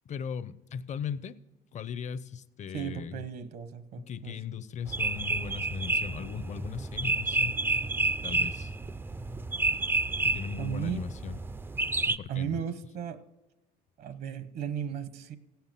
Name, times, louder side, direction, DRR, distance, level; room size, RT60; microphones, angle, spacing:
voice 1, 0.0-1.4 1.7-3.2 4.0-7.8 8.2-8.7 10.2-11.4 12.1-12.6, left 7 dB, 45° left, 0.6 m, -38 dB
voice 2, 2.7-4.4 10.6-11.0 12.3-13.2 14.0-15.4, right 8 dB, 65° right, 0.9 m, -35 dB
sound 1, 4.9-12.2, right 2 dB, 15° right, 0.3 m, -30 dB
16.0 x 5.8 x 7.5 m
cardioid pair, 110°, 17 cm